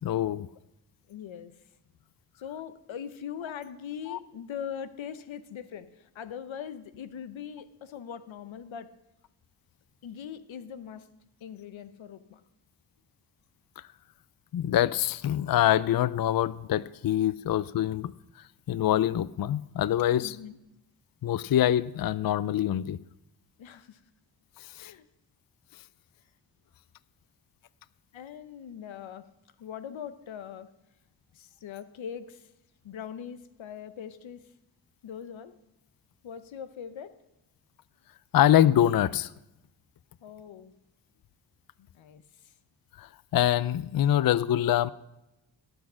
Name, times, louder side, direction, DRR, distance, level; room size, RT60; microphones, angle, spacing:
voice 1, 0.0-0.5 4.1-4.2 14.5-18.1 18.7-20.4 21.2-23.0 24.8-24.9 38.3-39.3 43.0-43.1 43.3-44.9, left 11 dB, 50° left, 19 dB, 0.5 m, -24 dB
voice 2, 1.1-1.5 2.4-8.9 10.0-11.1 11.4-12.4 20.2-20.6 23.6-24.0 24.8-25.0 28.1-29.3 29.6-30.7 31.3-32.5 32.8-34.5 35.0-35.5 36.2-37.1 40.2-40.7 41.8-42.2, left 8 dB, 90° left, 12 dB, 0.8 m, -41 dB
17.5 x 6.3 x 6.1 m, 0.92 s
cardioid pair, 45°, 45 cm